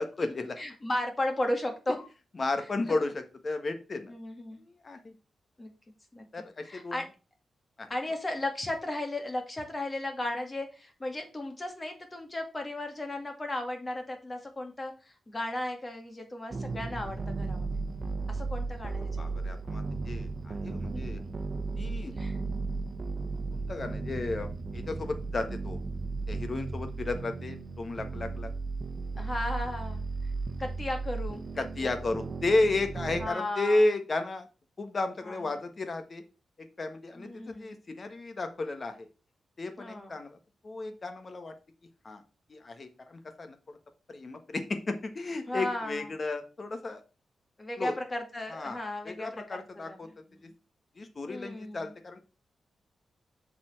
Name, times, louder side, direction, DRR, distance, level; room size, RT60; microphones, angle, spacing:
voice 1, 0.0-0.6 2.4-4.1 4.6-5.1 6.3-7.0 7.8-7.9 19.2-21.2 21.8-22.1 23.5-25.8 26.3-28.5 31.6-34.5 34.8-36.2 36.8-39.1 39.6-40.4 40.6-41.5 42.0-42.2 42.5-43.8 44.1-47.0 47.8-47.9 48.5-48.8 49.0-50.1 50.4-50.5 51.0-52.2, left 2 dB, 40° left, 7 dB, 1.5 m, -33 dB
voice 2, 0.6-2.1 4.1-4.6 5.6-5.7 6.1-6.2 6.7-7.1 7.9-17.7 18.3-19.4 22.1-22.4 29.2-30.0 30.6-31.4 31.8-32.2 33.2-33.9 35.2-35.4 37.2-37.7 39.8-40.2 45.5-46.1 47.6-50.0 50.3-50.5 51.3-51.9, left 1 dB, 25° left, 4 dB, 2.2 m, -35 dB
sound 1, 16.5-33.3, right 3 dB, 45° right, 1.0 m, -35 dB
7.3 x 4.4 x 5.7 m, 0.31 s
cardioid pair, 105°, 0 cm